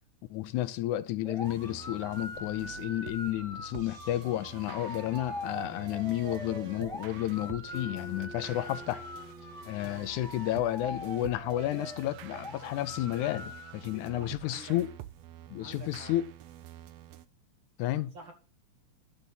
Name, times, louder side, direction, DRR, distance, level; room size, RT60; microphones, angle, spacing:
voice 1, 0.3-9.1 9.7-14.9 15.5-16.2 17.8-18.1, left 14 dB, 85° left, 2.1 m, -31 dB
sound 1, 1.2-13.7, left 1 dB, ahead, 2.4 m, -43 dB
sound 2, 1.4-17.3, right 13 dB, 75° right, 1.6 m, -48 dB
Acoustic guitar, 7.7-11.1, left 3 dB, 45° left, 1.7 m, -50 dB
voice 2, 14.1-14.8 15.6-16.1 18.0-18.3, right 3 dB, 45° right, 2.0 m, -49 dB
11.5 x 4.0 x 7.2 m
omnidirectional pair, 3.5 m